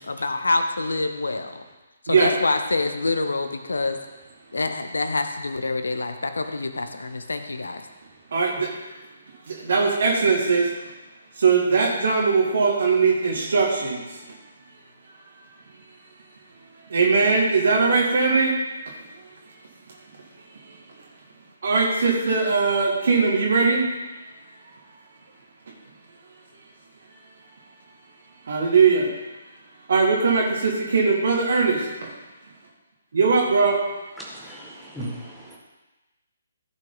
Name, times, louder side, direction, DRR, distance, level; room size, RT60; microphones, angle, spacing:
voice 1, 0.0-1.6 2.0-4.0 4.5-7.9, left 3 dB, 70° left, 8 dB, 0.9 m, -26 dB
voice 2, 8.3-8.7 9.5-10.7 11.4-14.2 16.9-18.6 20.6-20.8 21.6-23.9 28.4-29.1 29.9-32.1 33.1-33.8, right 4 dB, 55° right, -2 dB, 2.0 m, -20 dB
voice 3, 34.2-35.6, equal, ahead, -5 dB, 1.8 m, -37 dB
14.5 x 5.9 x 4.0 m, 1.1 s
figure-of-eight pair, 135°, 0 cm